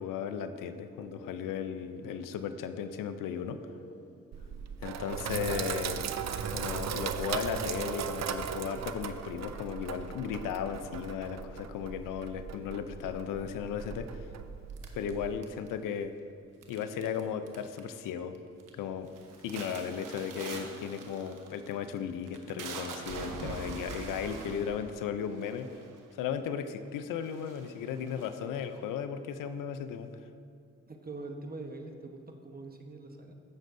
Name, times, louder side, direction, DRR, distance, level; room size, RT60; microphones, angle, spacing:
voice 1, 0.0-3.6 4.8-6.0 6.5-14.3 14.9-16.1 16.7-18.4 18.8-19.1 19.4-25.8 26.1-30.1, left 7 dB, 80° left, 10 dB, 0.6 m, -36 dB
sound 1, 1.0-6.0, left 1 dB, 45° left, 0.9 m, -54 dB
Sink (filling or washing), 4.3-15.3, right 7 dB, 55° right, 0.6 m, -37 dB
sound 2, 14.8-15.9 16.6-17.2 17.5-18.0 18.4-18.7 19.1-26.1 26.8-26.9 27.2-28.8, right 4 dB, 75° right, 1.1 m, -43 dB
voice 2, 30.9-33.3, right 2 dB, 30° right, 4 dB, 1.1 m, -43 dB
15.0 x 6.2 x 2.6 m, 2.3 s
supercardioid pair, 55°, 32 cm